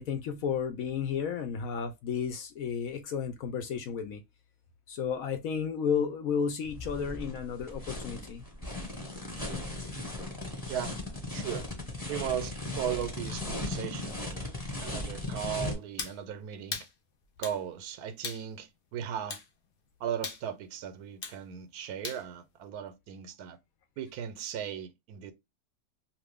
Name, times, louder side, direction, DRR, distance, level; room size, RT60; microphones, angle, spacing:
voice 1, 0.0-4.2 4.9-8.4, left 7 dB, 75° left, 1.0 m, -32 dB
sound 1, 6.6-15.7, left 2 dB, 15° left, 1.2 m, -37 dB
voice 2, 11.3-11.7 12.1-14.5 14.8-16.9 17.4-19.4 20.0-23.6 24.0-25.3, right 9 dB, 90° right, 1.1 m, -37 dB
sound 2, 16.0-16.2 16.7-16.9 17.4-17.6 18.2-18.4 19.3-19.5 20.2-20.4 21.2-21.4 22.0-22.2, left 5 dB, 50° left, 0.7 m, -38 dB
2.6 x 2.5 x 3.4 m
omnidirectional pair, 1.6 m